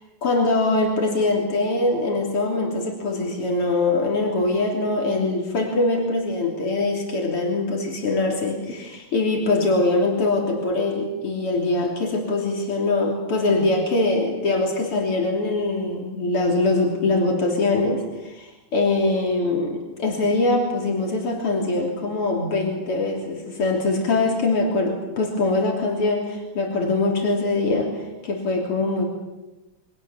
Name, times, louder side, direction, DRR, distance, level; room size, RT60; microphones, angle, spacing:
voice 1, 0.2-29.1, left 2 dB, 90° left, 0 dB, 4.2 m, -23 dB
28.5 x 24.0 x 7.2 m, 1.0 s
omnidirectional pair, 2.4 m